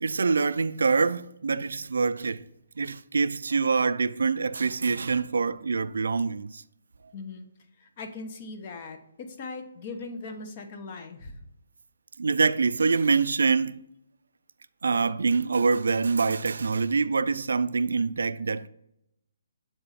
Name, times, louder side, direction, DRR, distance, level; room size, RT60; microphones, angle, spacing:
voice 1, 0.0-2.4 2.8-6.6 12.2-13.8 14.8-18.7, right 4 dB, 80° right, 0.3 m, -25 dB
voice 2, 7.1-7.5 7.8-11.5, left 3 dB, 40° left, 0.9 m, -40 dB
7.6 x 4.0 x 4.1 m
hypercardioid pair, 155°, 0 cm